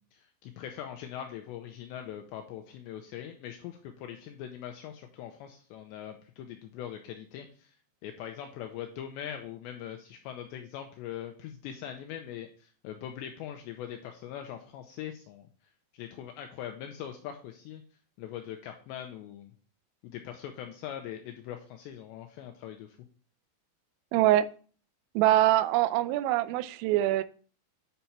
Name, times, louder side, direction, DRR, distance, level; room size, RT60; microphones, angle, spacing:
voice 1, 0.0-7.8 8.0-15.5 15.9-17.8 18.2-19.5 20.0-23.0, left 10 dB, 85° left, 5 dB, 2.6 m, -42 dB
voice 2, 24.1-24.5 25.2-27.2, right 14 dB, 85° right, 14 dB, 3.2 m, -24 dB
9.2 x 5.7 x 4.2 m, 0.42 s
omnidirectional pair, 5.7 m